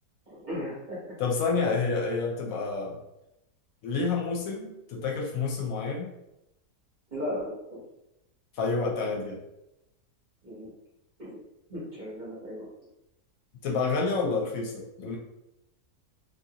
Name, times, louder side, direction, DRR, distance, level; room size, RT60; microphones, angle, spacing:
voice 1, 0.3-1.2 7.1-7.8 10.4-10.7 11.2-11.4 11.7-12.7, left 1 dB, 40° right, -8 dB, 0.7 m, -36 dB
voice 2, 1.2-3.0 3.8-6.1 8.5-9.4 13.6-15.2, left 4 dB, 70° left, -1 dB, 0.9 m, -29 dB
2.8 x 2.4 x 2.7 m, 0.88 s
omnidirectional pair, 1.6 m